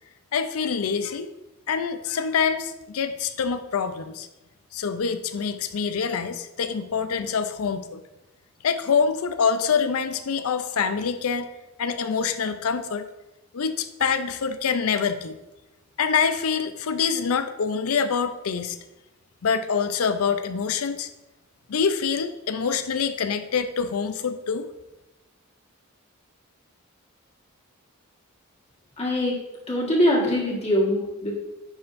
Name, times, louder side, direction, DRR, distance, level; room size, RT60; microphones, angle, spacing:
voice 1, 0.3-1.3 1.7-4.3 4.7-8.0 8.6-11.5 11.8-13.1 13.5-15.4 16.0-18.8 19.4-21.1 21.7-24.7, left 6 dB, 90° left, 10 dB, 0.5 m, -25 dB
voice 2, 29.0-29.4 29.7-31.3, left 1 dB, 30° left, -3 dB, 1.5 m, -22 dB
9.4 x 4.4 x 2.6 m, 0.99 s
head